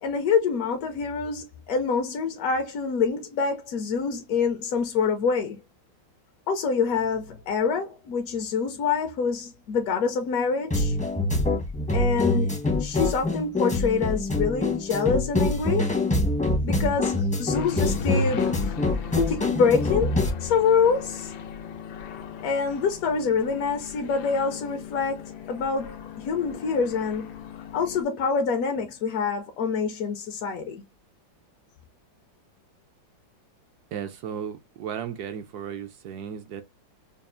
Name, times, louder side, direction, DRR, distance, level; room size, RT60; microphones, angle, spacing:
voice 1, 0.0-5.6 6.5-11.0 11.9-12.5 12.8-15.9 16.6-21.3 22.4-27.3 27.7-30.8, left 5 dB, 65° left, 0.9 m, -26 dB
sound 1, 10.7-20.3, left 2 dB, 10° left, 0.5 m, -25 dB
sound 2, 17.5-28.0, left 6 dB, 85° left, 1.5 m, -38 dB
voice 2, 33.9-36.6, right 8 dB, 70° right, 1.0 m, -35 dB
5.3 x 2.3 x 2.5 m
omnidirectional pair, 2.0 m